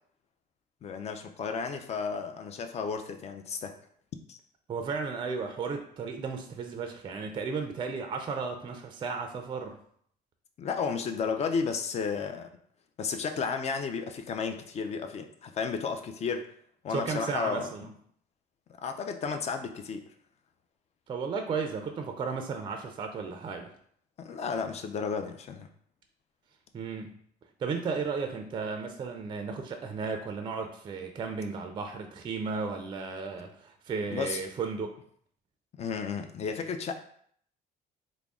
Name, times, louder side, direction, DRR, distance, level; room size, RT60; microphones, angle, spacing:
voice 1, 0.8-3.8 4.3-4.4 10.6-12.5 13.0-16.5 16.8-17.9 18.8-20.1 24.2-25.7 34.1-34.4 35.8-36.9, left 5 dB, 40° left, 6 dB, 0.4 m, -33 dB
voice 2, 4.7-9.8 16.9-17.9 21.1-23.7 26.7-27.1 27.6-35.0, right 5 dB, 30° right, 5 dB, 0.4 m, -34 dB
3.5 x 2.0 x 3.5 m, 0.63 s
cardioid pair, 110°, 17 cm